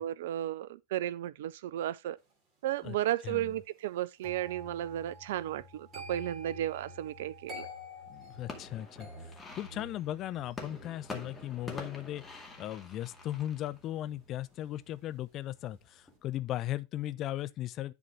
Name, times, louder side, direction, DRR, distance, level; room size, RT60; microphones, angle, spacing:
voice 1, 0.0-2.2 2.6-7.7, right 12 dB, 55° right, 0.5 m, -34 dB
sound 1, 4.2-15.2 15.5-15.9, left 1 dB, 25° right, 3.2 m, -50 dB
voice 2, 8.1-12.2 12.6-17.9, left 13 dB, 35° left, 0.5 m, -37 dB
sound 2, 8.1-14.7 15.1-15.7 16.1-16.7, left 3 dB, 15° left, 2.1 m, -47 dB
10.5 x 4.0 x 4.4 m
figure-of-eight pair, 90°, 0 cm